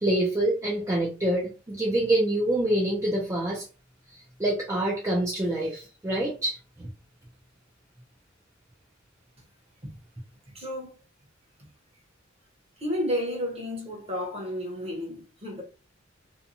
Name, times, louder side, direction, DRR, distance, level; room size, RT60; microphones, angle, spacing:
voice 1, 0.0-3.6 4.4-6.9, right 1 dB, 15° right, 0.5 m, -26 dB
voice 2, 10.5-10.9 12.8-15.6, equal, 30° right, 1.0 m, -32 dB
2.7 x 2.2 x 2.6 m
head